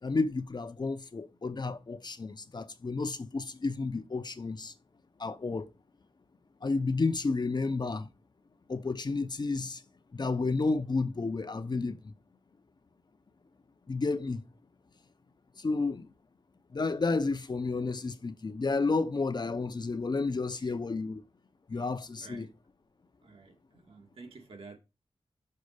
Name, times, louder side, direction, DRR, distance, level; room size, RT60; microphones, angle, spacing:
voice 1, 0.0-4.7 5.2-5.7 6.6-8.1 8.7-9.8 10.1-12.1 13.9-14.4 15.6-16.1 16.7-21.2 21.7-22.5, left 3 dB, 45° left, 0.8 m, -31 dB
voice 2, 22.2-22.6 23.2-24.8, right 4 dB, 65° right, 2.1 m, -51 dB
6.7 x 4.2 x 6.6 m
wide cardioid pair, 80°, 10 cm